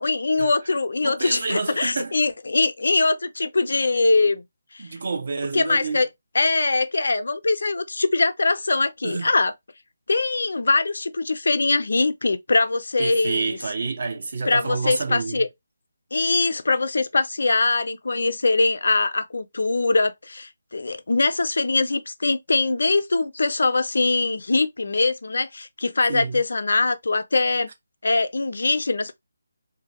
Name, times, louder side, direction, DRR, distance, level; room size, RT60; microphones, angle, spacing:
voice 1, 0.0-4.4 4.7-4.9 5.5-6.1 6.3-9.5 10.1-13.6 14.4-15.5 16.1-27.7 28.0-29.2, left 3 dB, 60° left, 0.4 m, -22 dB
voice 2, 1.0-2.1 4.8-6.0 9.0-9.3 13.0-15.4 26.1-26.4, right 4 dB, 50° right, 0.7 m, -28 dB
2.5 x 2.3 x 2.9 m
figure-of-eight pair, 150°, 0 cm